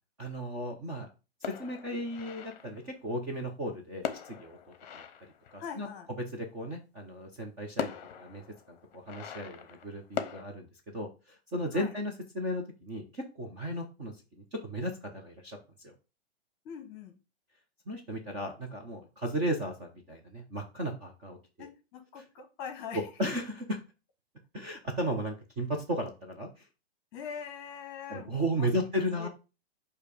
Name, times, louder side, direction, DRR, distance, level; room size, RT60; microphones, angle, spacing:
voice 1, 0.2-1.1 1.4-4.6 4.9-5.0 5.5-5.9 6.3-8.4 8.7-15.6 15.8-15.9 17.9-21.7 22.9-23.8 24.5-26.7 28.1-29.3, equal, 15° right, 1 dB, 0.6 m, -35 dB
sound 1, 1.4-2.9 4.0-6.0 7.2-7.3 7.8-10.4, left 8 dB, 40° left, 0.8 m, -40 dB
voice 2, 5.6-6.1 11.7-11.9 16.6-17.2 21.6-23.1 27.1-29.3, left 7 dB, 25° left, 6 dB, 1.1 m, -43 dB
6.6 x 2.8 x 5.1 m, 0.30 s
hypercardioid pair, 165°, 32 cm